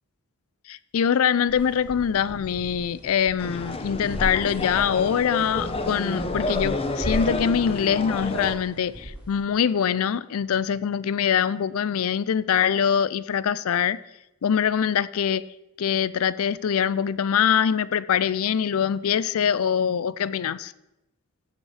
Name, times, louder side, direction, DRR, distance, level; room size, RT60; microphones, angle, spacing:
voice 1, 0.7-14.0 14.4-15.4 15.8-20.7, left 8 dB, 70° left, 0.4 m, -23 dB
sound 1, 1.5-9.4, equal, 5° right, 3.1 m, -37 dB
sound 2, 3.4-8.6, left 2 dB, 25° left, 0.7 m, -30 dB
16.0 x 5.4 x 4.8 m
head